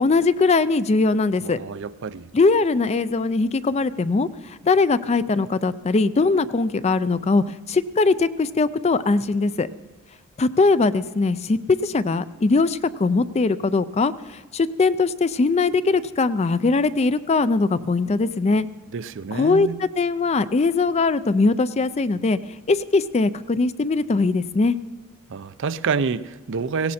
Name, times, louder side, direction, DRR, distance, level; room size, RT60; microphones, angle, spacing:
voice 1, 0.0-1.6 2.3-9.7 10.4-18.7 19.3-22.4 22.7-24.7, left 3 dB, 30° left, 0.4 m, -21 dB
voice 2, 1.4-2.3 18.5-18.6 18.9-19.8 25.3-26.9, right 5 dB, 55° right, 0.5 m, -28 dB
17.5 x 17.0 x 4.3 m
head